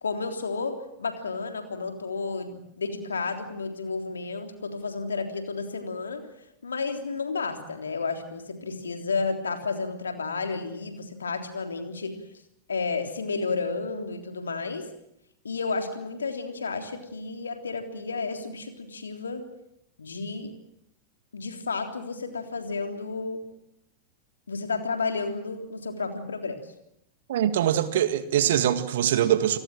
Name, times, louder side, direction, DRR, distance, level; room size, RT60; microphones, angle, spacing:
voice 1, 0.0-6.2 6.6-12.1 12.7-14.9 15.4-19.5 20.0-20.5 21.3-23.4 24.5-26.6, left 4 dB, 70° left, 3.5 m, -32 dB
voice 2, 27.3-29.6, right 10 dB, 60° right, 2.0 m, -23 dB
29.5 x 18.5 x 7.5 m
figure-of-eight pair, 90°, 0 cm